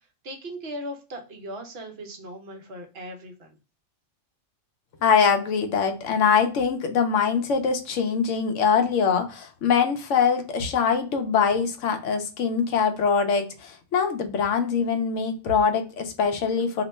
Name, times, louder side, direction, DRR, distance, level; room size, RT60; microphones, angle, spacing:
voice 1, 0.2-3.5, equal, 60° right, 1.0 m, -38 dB
voice 2, 5.0-16.8, left 6 dB, 85° left, 1.0 m, -23 dB
2.9 x 2.2 x 4.1 m
omnidirectional pair, 1.3 m